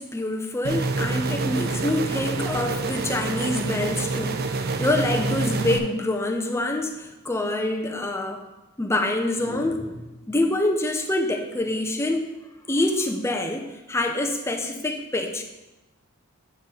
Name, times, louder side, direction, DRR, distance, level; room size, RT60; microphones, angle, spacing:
voice 1, 0.0-8.4 8.8-12.3 12.7-15.4, left 1 dB, 10° left, 4 dB, 0.6 m, -26 dB
sound 1, 0.6-5.8, right 3 dB, 45° right, 0.5 m, -27 dB
9.2 x 3.8 x 5.6 m, 1.1 s
head